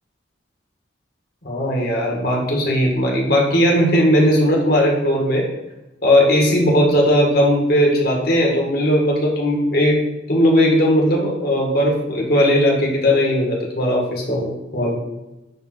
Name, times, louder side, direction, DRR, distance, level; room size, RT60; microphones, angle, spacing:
voice 1, 1.4-5.5 6.0-10.0 10.3-15.0, equal, 55° left, -1 dB, 2.0 m, -17 dB
11.0 x 3.7 x 4.4 m, 0.99 s
head